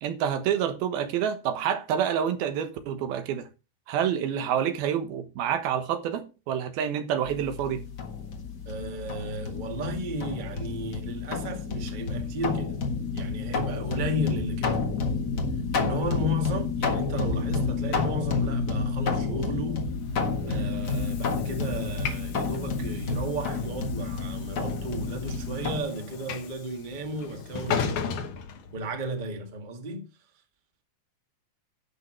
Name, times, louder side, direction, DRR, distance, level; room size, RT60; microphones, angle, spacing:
voice 1, 0.0-3.5 3.9-7.8, right 9 dB, 85° right, 3.1 m, -28 dB
sound 1, 7.2-25.8, left 4 dB, 45° left, 1.3 m, -30 dB
voice 2, 8.6-12.8 13.1-14.8 15.7-19.9 20.5-28.1 28.7-30.3, equal, 25° right, 1.1 m, -34 dB
Train / Sliding door, 20.0-29.3, left 6 dB, 65° left, 2.4 m, -37 dB
11.5 x 8.5 x 4.4 m
omnidirectional pair, 4.2 m